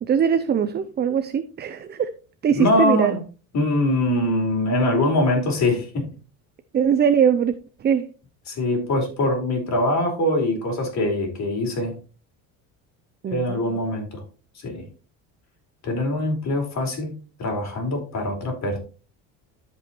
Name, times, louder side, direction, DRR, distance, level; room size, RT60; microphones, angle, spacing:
voice 1, 0.0-2.1 2.4-3.1 6.7-7.5 7.8-8.1 13.2-13.6, right 8 dB, 25° right, 0.5 m, -21 dB
voice 2, 2.5-3.2 3.5-6.0 8.5-11.9 13.3-14.2 14.6-14.8 15.8-17.1 17.4-18.8, left 1 dB, 45° left, 4.3 m, -23 dB
12.5 x 5.5 x 3.1 m
cardioid pair, 115°, 38 cm